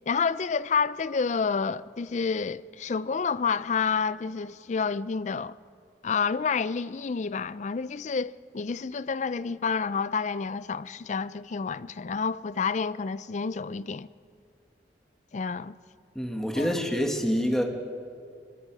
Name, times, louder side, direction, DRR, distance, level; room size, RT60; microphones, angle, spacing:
voice 1, 0.1-5.6 6.0-14.1 15.3-15.8 16.5-16.7, left 5 dB, 40° left, 0.4 m, -29 dB
voice 2, 16.2-17.6, equal, 5° left, 1.8 m, -26 dB
25.0 x 21.5 x 4.8 m
head